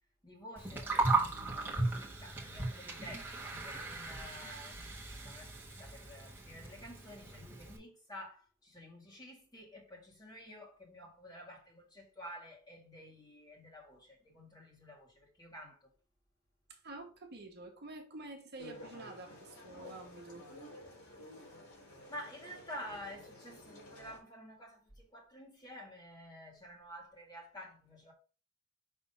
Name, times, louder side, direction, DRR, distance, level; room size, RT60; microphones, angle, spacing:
voice 1, 0.2-15.9 21.5-21.6 22.1-28.1, equal, 20° left, 2.0 m, -50 dB
Gurgling, 0.6-7.8, right 3 dB, 10° right, 1.3 m, -37 dB
voice 2, 16.7-20.5, right 2 dB, 50° right, 1.2 m, -49 dB
sound 1, 18.6-24.2, left 1 dB, 85° left, 3.3 m, -52 dB
5.6 x 3.4 x 5.5 m
head